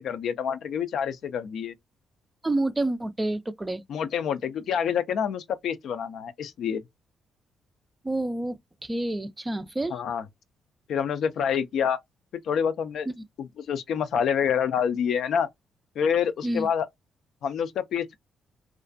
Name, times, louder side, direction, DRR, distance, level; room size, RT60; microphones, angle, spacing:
voice 1, 0.0-1.7 3.9-6.8 9.9-10.2 10.9-12.0 12.4-13.1 13.4-15.5 16.0-16.9 17.4-18.2, left 7 dB, 70° left, 0.3 m, -27 dB
voice 2, 2.4-3.8 8.0-10.0 13.1-13.2 16.4-16.7, right 2 dB, 20° right, 0.3 m, -28 dB
2.4 x 2.1 x 2.5 m
supercardioid pair, 65°, 0 cm